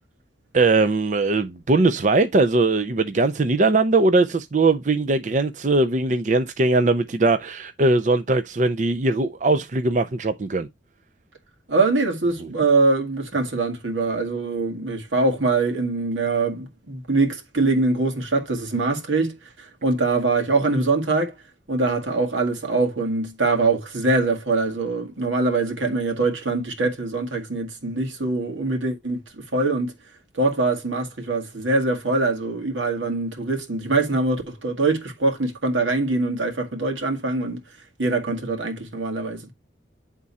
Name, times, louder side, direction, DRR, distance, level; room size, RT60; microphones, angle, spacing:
voice 1, 0.5-10.7 12.4-12.5, right 3 dB, 40° right, 0.5 m, -20 dB
voice 2, 11.7-21.3 21.7-29.9 30.3-37.6 38.0-39.5, right 3 dB, 90° right, 1.9 m, -23 dB
9.5 x 3.7 x 4.1 m
head